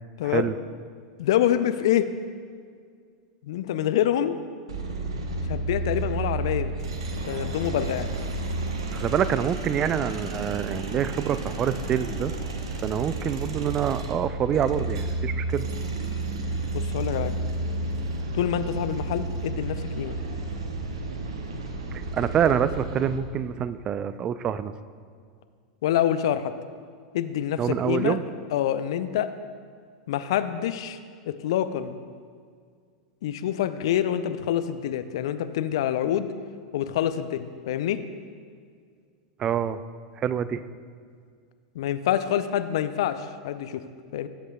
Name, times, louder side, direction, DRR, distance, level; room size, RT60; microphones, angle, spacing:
voice 1, 0.2-0.5 8.9-12.3 12.8-15.7 22.1-24.7 27.6-28.2 39.4-39.8 40.2-40.6, right 8 dB, 30° right, 14 dB, 0.4 m, -26 dB
voice 2, 1.2-2.1 3.4-4.4 5.5-6.7 7.3-8.1 16.7-17.3 18.3-20.2 25.8-26.5 27.1-28.2 28.5-29.3 30.1-31.0 31.3-32.0 33.2-36.3 36.7-38.0 41.7-43.8 44.1-44.3, left 11 dB, 60° left, 11 dB, 0.5 m, -26 dB
sound 1, 4.7-23.2, right 2 dB, 70° right, 1.0 m, -31 dB
17.5 x 8.0 x 2.3 m, 2.1 s
figure-of-eight pair, 90°, 3 cm